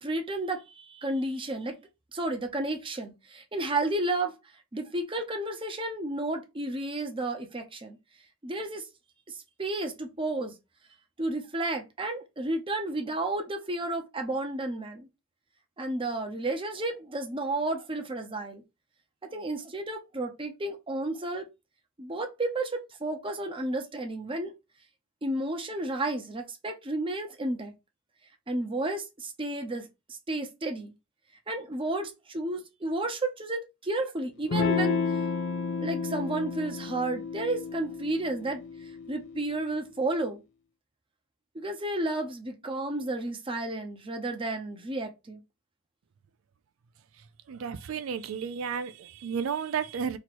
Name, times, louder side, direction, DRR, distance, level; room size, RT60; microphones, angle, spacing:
voice 1, 0.0-1.8 2.1-4.3 4.7-8.0 8.4-8.9 9.6-10.6 11.2-15.1 15.8-18.6 19.2-21.5 22.0-24.5 25.2-27.7 28.5-29.9 30.3-30.9 31.5-35.0 35.8-40.4 41.5-45.4, right 2 dB, 25° right, 0.8 m, -32 dB
Electric guitar / Strum, 34.5-39.6, left 5 dB, 60° left, 0.5 m, -31 dB
voice 2, 47.5-50.2, right 7 dB, 80° right, 0.4 m, -32 dB
3.0 x 3.0 x 4.2 m
head